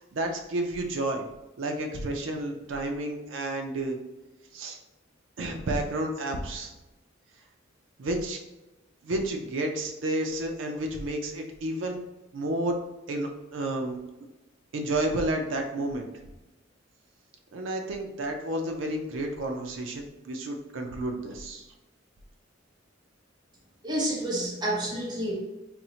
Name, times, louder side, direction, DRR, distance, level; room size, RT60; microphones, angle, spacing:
voice 1, 0.1-1.3 1.6-4.0 4.5-4.8 5.4-6.7 8.0-8.4 9.0-12.0 12.3-12.8 13.1-14.0 14.7-16.1 17.5-21.7, right 1 dB, 70° right, 3 dB, 0.5 m, -31 dB
voice 2, 23.8-25.3, right 1 dB, 20° right, -4 dB, 0.7 m, -29 dB
4.2 x 2.0 x 2.7 m, 1.0 s
head